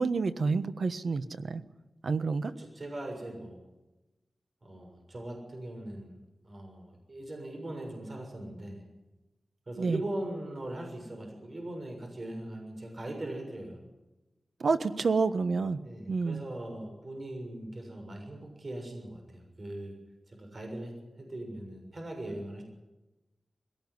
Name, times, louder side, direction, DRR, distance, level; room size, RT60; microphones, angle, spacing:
voice 1, 0.0-1.6 2.0-2.5 9.8-10.0 14.6-15.8 16.1-16.4, right 4 dB, 75° right, 11 dB, 1.3 m, -28 dB
voice 2, 2.4-3.6 4.6-6.1 6.4-8.8 9.7-13.8 15.8-20.0 20.3-22.6, right 1 dB, 45° right, 3 dB, 6.9 m, -40 dB
22.0 x 17.5 x 9.7 m, 1.0 s
wide cardioid pair, 80°, 0 cm